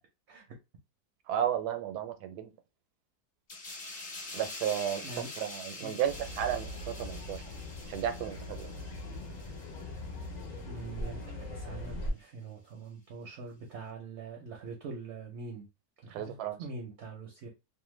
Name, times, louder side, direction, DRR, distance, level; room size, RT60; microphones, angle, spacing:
voice 1, 1.3-2.5 4.3-7.4 7.9-8.7 16.1-16.6, right 10 dB, 90° right, 1.2 m, -33 dB
sound 1, 3.5-10.7 11.0-11.2, left 2 dB, 40° left, 0.8 m, -46 dB
sound 2, 6.0-12.1, left 1 dB, 75° left, 0.4 m, -41 dB
voice 2, 10.7-11.2 11.5-15.6 16.0-17.5, right 4 dB, 65° right, 0.7 m, -43 dB
2.7 x 2.1 x 3.0 m
omnidirectional pair, 1.7 m